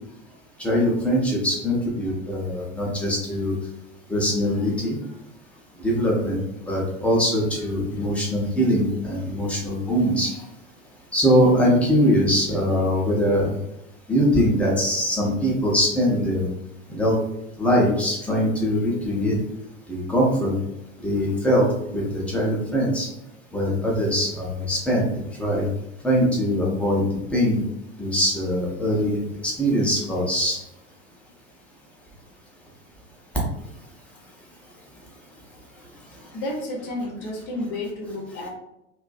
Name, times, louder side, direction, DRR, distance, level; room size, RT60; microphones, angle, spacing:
voice 1, 0.6-3.5 4.1-5.0 5.8-10.4 11.1-13.5 14.1-16.5 16.9-17.2 17.6-19.3 19.9-20.5 21.0-23.1 23.5-25.1 25.4-25.7 26.0-27.0 27.3-27.6 28.0-29.2 29.4-30.6, equal, 5° left, -4 dB, 0.5 m, -22 dB
voice 2, 36.1-38.5, left 1 dB, 30° left, -1 dB, 0.8 m, -31 dB
2.5 x 2.1 x 2.4 m, 0.85 s
figure-of-eight pair, 85°, 38 cm